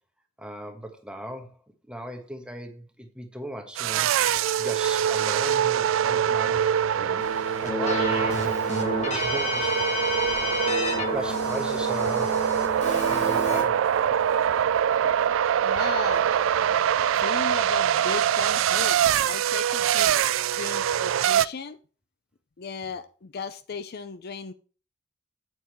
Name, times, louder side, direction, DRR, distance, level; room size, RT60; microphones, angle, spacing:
voice 1, 0.4-1.6 1.9-4.1 4.6-7.2 7.6-10.1 11.1-12.5 13.0-14.0, right 1 dB, 5° right, 1.3 m, -37 dB
sound 1, 3.8-21.5, right 9 dB, 85° right, 0.3 m, -24 dB
Keyboard (musical), 7.2-13.6, left 2 dB, 40° left, 2.1 m, -30 dB
voice 2, 15.6-16.2 17.2-20.1 20.6-21.8 22.6-24.5, left 5 dB, 55° left, 0.5 m, -36 dB
8.3 x 8.0 x 3.1 m
head